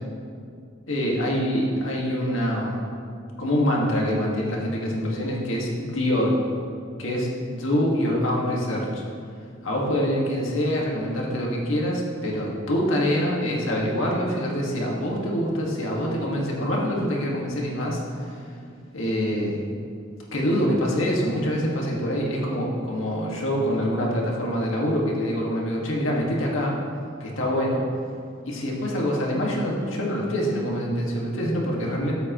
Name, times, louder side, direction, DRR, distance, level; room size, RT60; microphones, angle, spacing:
voice 1, 0.9-2.9 3.4-6.4 7.0-9.0 9.6-18.5 18.9-19.6 20.3-26.8 27.2-27.9 28.5-32.1, equal, 85° left, -2 dB, 1.8 m, -25 dB
13.5 x 7.9 x 3.1 m, 2.4 s
head